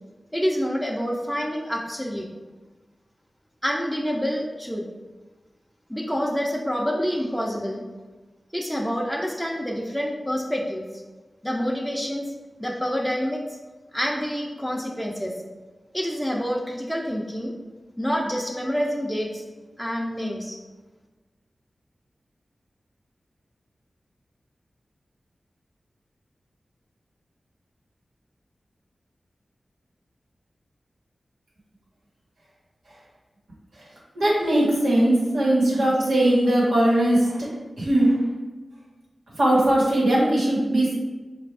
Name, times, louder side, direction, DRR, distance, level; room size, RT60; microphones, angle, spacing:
voice 1, 0.3-2.3 3.6-4.9 5.9-7.8 8.5-11.0 11.4-12.3 12.6-13.4 13.9-15.3 15.9-17.5 18.0-19.4 19.8-20.6, equal, ahead, -2 dB, 0.6 m, -27 dB
voice 2, 34.1-37.5 37.8-38.3 39.4-40.9, right 1 dB, 85° right, -6 dB, 1.3 m, -20 dB
4.4 x 2.5 x 3.3 m, 1.2 s
cardioid pair, 40°, 0 cm